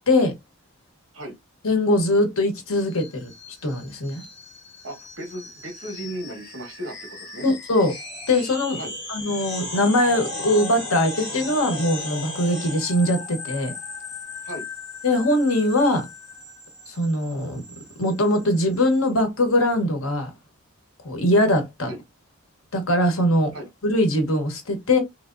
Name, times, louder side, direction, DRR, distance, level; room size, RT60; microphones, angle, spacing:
voice 1, 1.6-3.3 3.6-4.2 7.4-7.9 8.3-8.8 9.1-13.7 15.0-16.1 16.9-17.6 18.0-20.3 21.0-21.9 22.7-23.5 23.8-25.0, left 1 dB, 75° left, 1.1 m, -21 dB
sound 1, 2.9-19.1, left 2 dB, 50° left, 1.6 m, -37 dB
voice 2, 4.8-7.5 8.7-8.9 14.4-14.7 21.9-22.0 23.5-23.7, right 1 dB, 60° right, 1.5 m, -36 dB
3.3 x 3.1 x 2.5 m
head